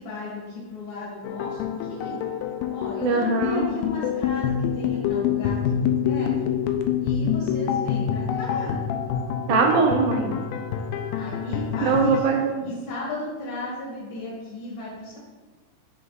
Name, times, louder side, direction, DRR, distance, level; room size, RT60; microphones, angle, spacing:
voice 1, 0.0-2.2 2.7-6.3 7.0-8.8 11.2-12.2 12.6-15.2, left 2 dB, 60° left, -5 dB, 2.9 m, -35 dB
sound 1, 1.3-12.2, left 8 dB, 85° left, 2.4 m, -26 dB
voice 2, 3.0-3.6 9.5-10.4 11.8-12.7, right 4 dB, 85° right, 2 dB, 2.5 m, -21 dB
6.6 x 5.7 x 4.0 m, 1.3 s
omnidirectional pair, 5.3 m